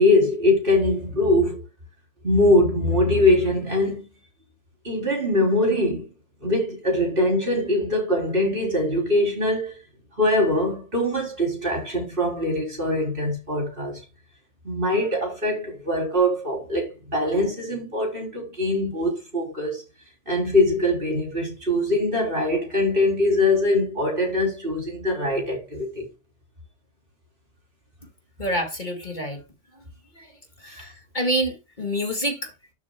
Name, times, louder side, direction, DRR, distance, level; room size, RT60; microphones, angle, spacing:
voice 1, 0.0-1.6 2.2-4.0 4.8-6.1 6.4-9.8 10.2-14.0 14.6-19.8 20.3-26.1, left 1 dB, 50° right, 3.9 m, -22 dB
voice 2, 28.4-29.4 30.2-30.3 30.6-32.7, equal, 40° left, 2.1 m, -27 dB
12.5 x 7.5 x 2.2 m
omnidirectional pair, 1.2 m